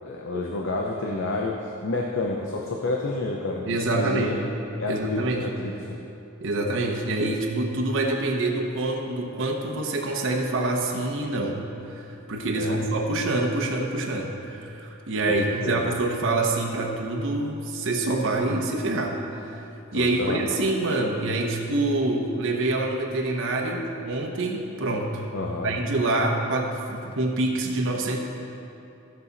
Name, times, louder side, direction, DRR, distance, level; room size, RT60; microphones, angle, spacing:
voice 1, 0.0-4.4 4.8-6.0 12.5-12.8 15.4-15.9 19.9-20.4 25.3-25.7, left 2 dB, 60° left, 0 dB, 0.8 m, -30 dB
voice 2, 3.7-4.3 4.9-5.5 6.4-25.3 25.6-28.2, right 2 dB, 60° right, 0 dB, 0.9 m, -26 dB
15.5 x 5.8 x 4.1 m, 2.7 s
head